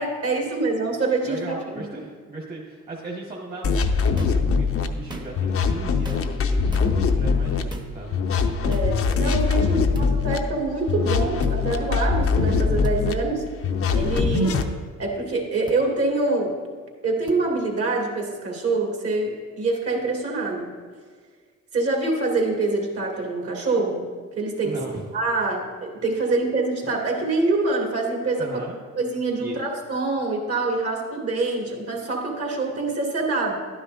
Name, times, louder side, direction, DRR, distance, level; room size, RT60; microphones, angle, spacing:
voice 1, 0.0-1.9 8.6-13.5 13.9-14.6 15.0-16.6 17.0-20.7 21.7-24.0 24.3-24.7 25.1-28.6 29.0-33.5, right 3 dB, 50° right, -1 dB, 2.3 m, -25 dB
voice 2, 1.2-8.2 9.6-9.8 24.6-25.1 28.4-28.8 29.4-29.6, right 2 dB, 30° right, -4 dB, 1.6 m, -37 dB
sound 1, 3.6-4.9 5.4-7.6 8.1-10.4 10.9-13.1 13.6-14.7, left 5 dB, 45° left, 0.7 m, -22 dB
sound 2, 4.1-4.5 5.0-5.5 6.0-6.4 6.7-6.9 7.7-7.9 8.7-8.9 9.9-10.1 11.4-11.6 12.8-13.0 14.2-14.3 15.7-15.8 17.3-17.4, right 1 dB, 15° right, 1.0 m, -38 dB
12.0 x 9.9 x 2.6 m, 1.5 s
cardioid pair, 90°, 30 cm